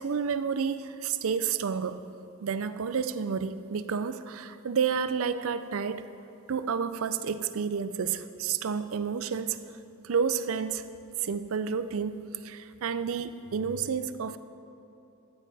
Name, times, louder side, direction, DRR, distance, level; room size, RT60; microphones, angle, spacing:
voice 1, 0.0-2.0 2.4-6.1 6.5-9.6 10.0-10.8 11.2-14.4, right 6 dB, 65° right, 12 dB, 0.5 m, -30 dB
13.5 x 9.6 x 4.1 m, 2.9 s
head